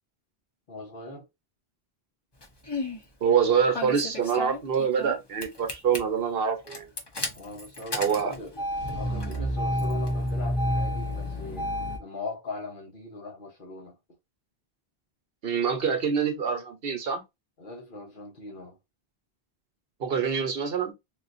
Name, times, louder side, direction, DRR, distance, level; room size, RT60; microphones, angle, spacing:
voice 1, 0.7-1.3 7.3-8.6 8.9-11.7 12.0-14.0 15.8-15.9 17.6-18.8, left 3 dB, 55° left, 1.1 m, -40 dB
Engine starting, 2.4-3.0 3.7-5.1 5.4-6.0 6.7-12.0, left 1 dB, 30° left, 0.6 m, -30 dB
voice 2, 3.2-6.9 7.9-8.3 15.4-17.2 20.0-20.9, right 7 dB, 65° right, 1.0 m, -25 dB
3.8 x 2.4 x 2.5 m
omnidirectional pair, 1.1 m